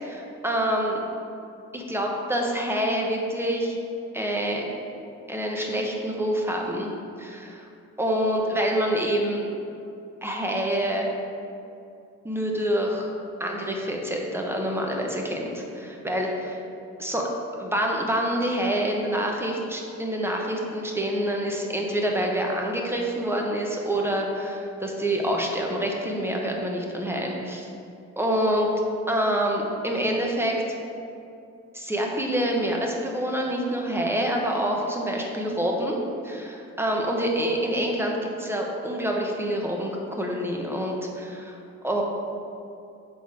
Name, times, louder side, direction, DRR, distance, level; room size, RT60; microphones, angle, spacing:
voice 1, 0.0-1.0 1.7-3.8 4.1-4.6 5.3-6.9 7.2-7.6 8.0-9.5 10.2-11.1 12.2-13.1 13.4-16.6 17.0-17.3 17.6-27.7 28.2-28.7 29.1-30.5 31.7-36.0 36.2-41.6 41.8-42.0, right 1 dB, 10° right, 0 dB, 0.9 m, -26 dB
6.1 x 3.9 x 4.8 m, 2.6 s
cardioid pair, 90°, 30 cm